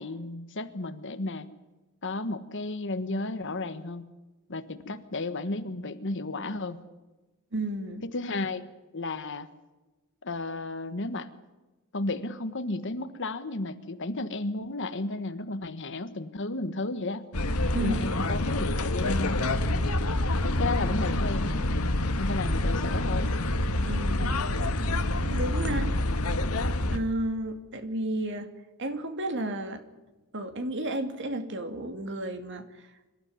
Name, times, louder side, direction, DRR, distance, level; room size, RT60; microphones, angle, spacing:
voice 1, 0.0-1.5 2.0-4.0 4.5-6.8 8.0-8.6 8.9-9.5 10.2-11.3 11.9-17.3 17.8-19.5 20.4-21.5 22.2-23.3, left 2 dB, 60° left, 10 dB, 1.4 m, -33 dB
voice 2, 7.5-8.0 17.7-18.1 23.9-24.4 25.2-25.9 26.9-28.5 28.8-29.8 30.3-32.6, right 1 dB, 55° right, 8 dB, 2.5 m, -32 dB
sound 1, 17.3-27.0, left 1 dB, 85° left, 1.9 m, -27 dB
25.5 x 13.0 x 9.5 m, 1.1 s
head